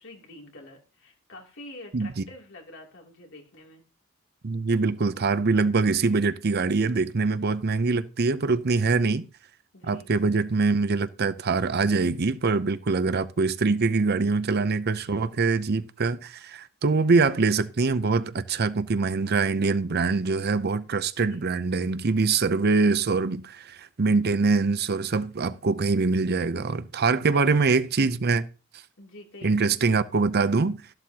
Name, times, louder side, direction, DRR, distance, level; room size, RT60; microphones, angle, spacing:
voice 1, 0.0-3.8 9.0-9.3 9.7-10.1 21.3-21.4 27.3-27.6 29.0-29.6, left 2 dB, 60° left, 2.8 m, -46 dB
voice 2, 1.9-2.3 4.4-9.2 9.8-28.5 29.4-30.8, right 4 dB, 50° right, 0.6 m, -24 dB
13.5 x 12.0 x 2.8 m
head